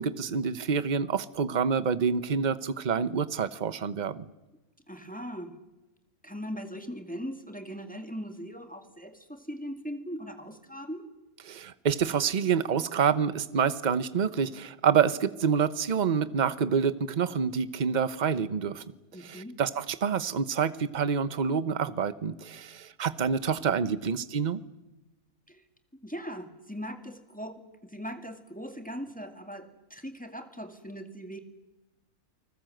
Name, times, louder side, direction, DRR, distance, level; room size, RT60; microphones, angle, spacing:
voice 1, 0.0-4.3 11.5-18.8 19.2-24.6, right 6 dB, 35° right, 15 dB, 0.9 m, -27 dB
voice 2, 4.9-5.5 6.2-11.1 19.1-19.6 25.5-25.7 26.0-31.4, equal, 5° left, 6 dB, 2.1 m, -40 dB
29.5 x 20.0 x 7.9 m, 1.0 s
omnidirectional pair, 1.6 m